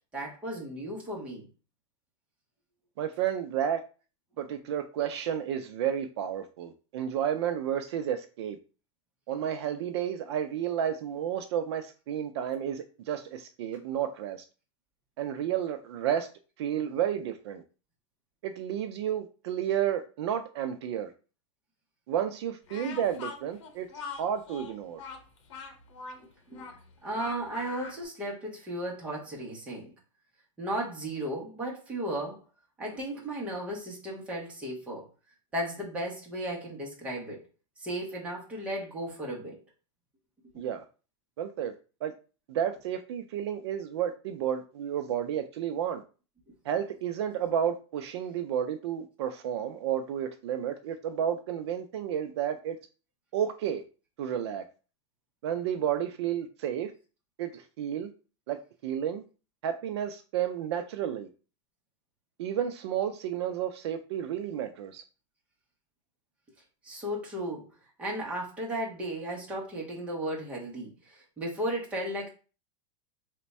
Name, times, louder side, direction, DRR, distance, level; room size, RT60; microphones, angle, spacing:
voice 1, 0.1-1.5 26.2-26.7 27.0-29.9 30.6-32.4 32.8-35.1 35.5-37.4 37.8-39.6 66.8-67.7 68.0-72.3, right 1 dB, 10° right, -2 dB, 0.7 m, -35 dB
voice 2, 3.0-3.8 4.4-8.6 9.3-14.4 15.2-16.3 16.6-17.6 18.4-21.1 22.1-23.9 24.2-25.0 40.6-40.8 41.4-41.7 42.0-42.1 42.5-46.0 46.7-52.8 53.3-53.8 54.2-54.6 55.4-56.9 57.4-58.1 58.5-59.2 59.6-61.3 62.4-65.0, right 9 dB, 55° right, 7 dB, 0.4 m, -31 dB
Speech, 22.7-28.0, left 5 dB, 65° left, 0.9 m, -42 dB
3.4 x 2.1 x 4.1 m, 0.35 s
supercardioid pair, 175°, 16 cm